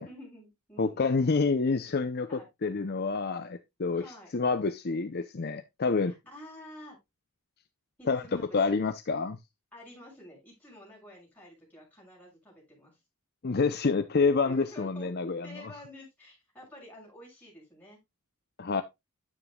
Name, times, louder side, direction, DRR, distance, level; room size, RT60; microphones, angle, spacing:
voice 1, 0.0-1.2 2.3-2.5 3.9-4.3 6.0-7.0 8.0-8.9 9.7-12.9 14.4-15.1 15.4-18.0, left 1 dB, 10° left, 6.4 m, -49 dB
voice 2, 0.8-4.0 4.3-6.1 8.1-9.4 13.4-15.6 18.6-18.8, left 4 dB, 45° left, 0.6 m, -28 dB
9.8 x 9.0 x 2.3 m
head